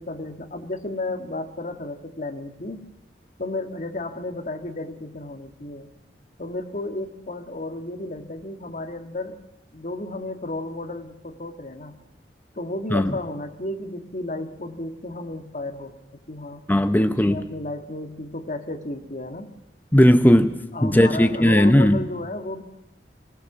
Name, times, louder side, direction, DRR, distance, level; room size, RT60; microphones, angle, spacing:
voice 1, 0.0-2.9 3.4-5.9 6.4-9.4 9.7-12.0 12.6-16.0 16.3-16.6 17.1-19.5 20.7-22.6, left 2 dB, 45° left, 1.8 m, -33 dB
voice 2, 16.7-17.4 19.9-22.0, equal, 10° left, 0.7 m, -17 dB
24.0 x 17.5 x 7.3 m
head